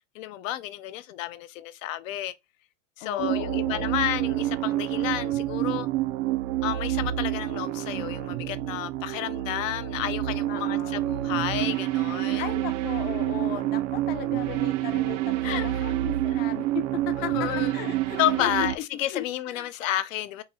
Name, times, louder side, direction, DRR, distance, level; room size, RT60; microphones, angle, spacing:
voice 1, 0.1-2.3 3.0-5.9 6.6-12.5 15.4-16.0 16.4-16.5 17.2-17.7 18.2-20.4, left 13 dB, 75° left, 0.6 m, -31 dB
voice 2, 3.0-4.3 10.5-11.1 12.4-18.7 19.1-19.2 19.5-19.7, left 11 dB, 25° left, 0.4 m, -37 dB
sound 1, 3.2-18.8, right 14 dB, 70° right, 0.5 m, -28 dB
3.9 x 2.0 x 3.6 m
supercardioid pair, 130°, 39 cm